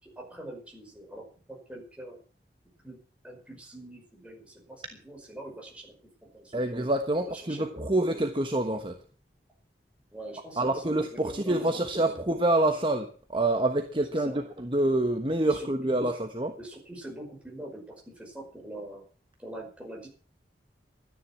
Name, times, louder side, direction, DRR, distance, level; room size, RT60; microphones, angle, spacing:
voice 1, 0.0-2.2 2.8-3.0 3.2-6.0 6.2-6.7 7.3-8.0 10.1-10.9 11.2-11.6 14.1-14.5 15.4-16.0 16.6-19.0 19.4-20.1, right 1 dB, 5° right, 0 dB, 5.5 m, -44 dB
voice 2, 6.5-9.0 10.6-16.6, right 1 dB, 30° right, 6 dB, 1.2 m, -27 dB
13.5 x 10.0 x 7.5 m, 0.41 s
head